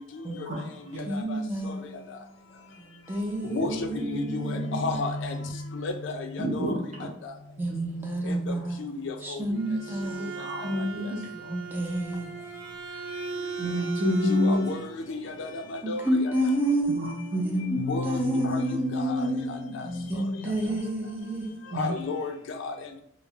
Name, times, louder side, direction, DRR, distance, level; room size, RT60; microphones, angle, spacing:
voice 1, 1.1-5.0 7.6-8.8 9.2-10.4 11.3-12.3 15.8-21.6, right 1 dB, 10° right, 0.4 m, -30 dB
voice 2, 3.5-6.7 8.5-9.4 10.8-10.9 14.2-16.3 17.8-18.6 18.9-19.8 20.4-20.5 21.7-22.3 22.6-22.7, left 3 dB, 70° left, 0.4 m, -32 dB
voice 3, 6.4-7.1 10.4-11.3 13.6-14.6 16.9-17.8 19.7-19.8 21.7-22.0, left 1 dB, 35° right, 0.8 m, -28 dB
Bowed string instrument, 9.4-14.9, right 5 dB, 75° right, 0.4 m, -38 dB
3.1 x 2.0 x 2.3 m
head